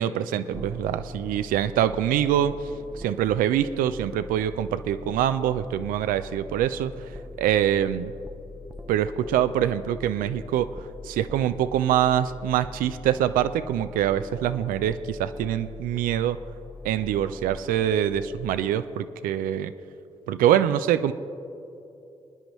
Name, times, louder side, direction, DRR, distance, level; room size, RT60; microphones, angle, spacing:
voice 1, 0.0-2.6 2.9-7.1 7.4-8.1 8.9-10.7 11.0-16.4 16.8-19.7 20.3-21.1, right 10 dB, 80° right, 12 dB, 0.4 m, -24 dB
sound 1, 0.5-18.5, left 2 dB, 15° right, 0.6 m, -42 dB
25.5 x 10.0 x 3.1 m, 2.8 s
hypercardioid pair, 40°, 14 cm